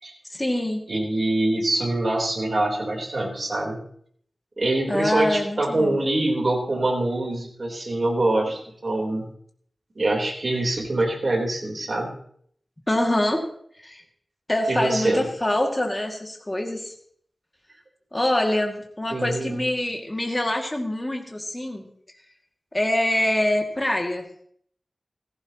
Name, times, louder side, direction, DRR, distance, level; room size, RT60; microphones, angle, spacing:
voice 1, 0.3-0.8 4.9-6.0 12.9-13.4 13.8-14.0 14.5-16.9 18.1-21.9 22.7-24.2, left 1 dB, 20° left, 2 dB, 2.2 m, -25 dB
voice 2, 0.9-3.8 4.6-9.3 10.0-12.1 14.7-15.2 19.1-19.6, right 2 dB, 55° right, -1 dB, 3.7 m, -24 dB
16.5 x 15.5 x 3.0 m, 0.63 s
wide cardioid pair, 85°, 0 cm